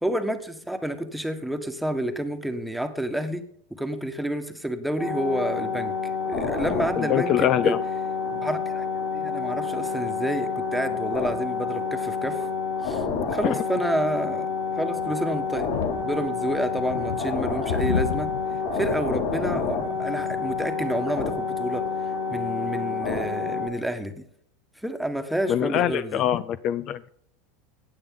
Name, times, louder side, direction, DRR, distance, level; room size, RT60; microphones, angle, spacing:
voice 1, 0.0-3.4 3.7-7.8 8.3-8.9 9.1-12.4 12.8-15.7 16.0-18.3 18.7-24.2 24.8-26.2, right 1 dB, ahead, 7 dB, 1.4 m, -29 dB
sound 1, 5.0-23.7, left 5 dB, 70° left, 6.0 m, -28 dB
voice 2, 7.0-7.8 13.4-13.6 25.5-27.1, left 11 dB, 45° left, 15 dB, 0.5 m, -24 dB
sound 2, 14.5-22.0, left 7 dB, 85° left, 1.1 m, -35 dB
16.0 x 9.1 x 3.8 m, 0.67 s
supercardioid pair, 120°, 0 cm